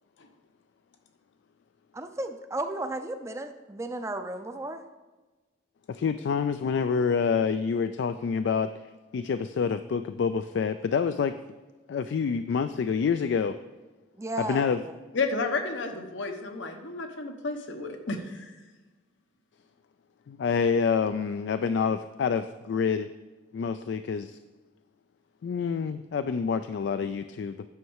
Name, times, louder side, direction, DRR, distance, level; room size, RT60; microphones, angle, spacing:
voice 1, 1.9-4.8 14.2-14.9, right 1 dB, 15° right, 8 dB, 0.4 m, -34 dB
voice 2, 5.9-8.7 9.1-11.3 11.9-13.6 14.4-14.8 20.3-23.1 23.5-24.4 25.4-27.7, left 6 dB, 70° left, 10 dB, 0.3 m, -27 dB
voice 3, 15.1-18.4, left 3 dB, 85° left, 5 dB, 1.0 m, -31 dB
9.5 x 6.4 x 4.7 m, 1.2 s
head